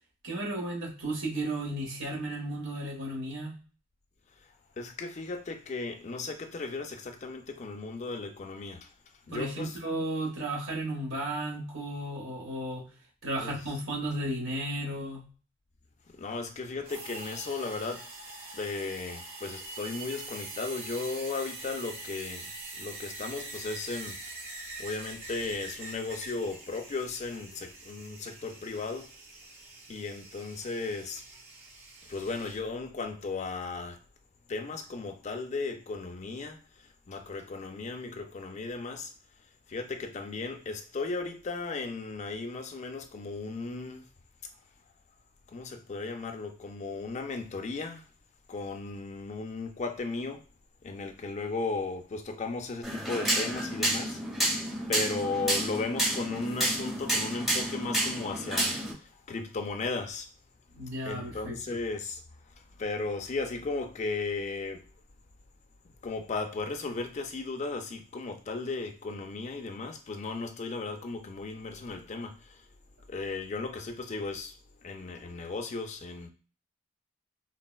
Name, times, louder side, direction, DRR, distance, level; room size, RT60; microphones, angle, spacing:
voice 1, 0.2-3.5 9.3-12.8 13.2-15.2 60.7-61.6, right 1 dB, 70° right, 1.2 m, -34 dB
voice 2, 4.4-8.9 9.3-9.8 13.4-13.7 16.1-18.1 18.5-24.2 24.8-29.1 29.9-31.3 32.1-34.0 34.5-39.1 39.7-44.1 45.5-48.0 48.5-50.4 50.8-54.2 54.9-60.3 61.0-64.9 65.8-72.7 73.1-74.6 74.8-76.3, left 3 dB, 35° left, 0.4 m, -36 dB
sound 1, 16.8-32.6, right 2 dB, 45° right, 1.4 m, -44 dB
sound 2, 52.8-58.9, right 1 dB, ahead, 1.0 m, -30 dB
3.7 x 2.1 x 2.3 m
head